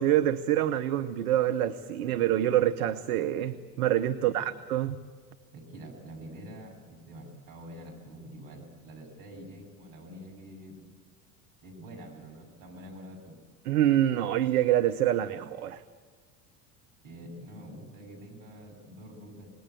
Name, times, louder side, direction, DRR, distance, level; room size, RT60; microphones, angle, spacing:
voice 1, 0.0-5.0 13.6-15.8, right 12 dB, 65° right, 9 dB, 0.9 m, -26 dB
voice 2, 5.5-10.8 11.6-13.4 17.0-19.5, equal, 45° right, 1 dB, 7.5 m, -46 dB
27.5 x 20.0 x 8.4 m, 1.5 s
figure-of-eight pair, 70°, 48 cm